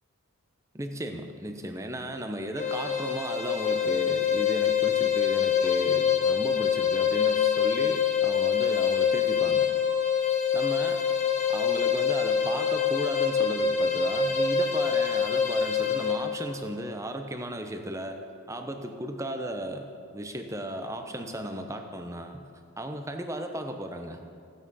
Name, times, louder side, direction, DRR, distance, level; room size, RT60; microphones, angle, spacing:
voice 1, 0.7-9.7 10.5-11.0 11.5-18.2 18.5-22.5 22.8-24.2, right 1 dB, 15° right, 5 dB, 0.8 m, -35 dB
sound 1, 2.6-16.2, left 7 dB, 30° left, 1.3 m, -25 dB
15.5 x 9.1 x 5.4 m, 2.3 s
head